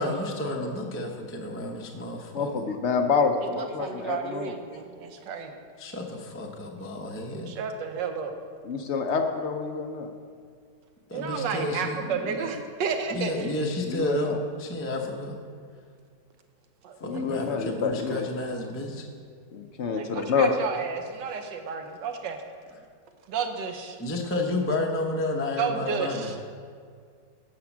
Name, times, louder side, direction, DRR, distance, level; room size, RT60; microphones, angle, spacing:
voice 1, 0.0-2.5 5.8-7.5 11.1-12.4 13.1-15.4 17.0-19.1 24.0-26.3, left 1 dB, 15° left, 1 dB, 0.4 m, -31 dB
voice 2, 2.3-4.5 8.6-10.1 13.8-14.4 17.0-18.3 19.5-20.5, left 5 dB, 70° left, 5 dB, 0.6 m, -27 dB
voice 3, 3.6-5.5 7.3-8.3 11.1-13.6 16.8-17.2 19.9-22.4 23.3-24.0 25.6-26.4, right 6 dB, 80° right, 5 dB, 1.5 m, -32 dB
9.4 x 5.9 x 7.2 m, 2.1 s
omnidirectional pair, 1.9 m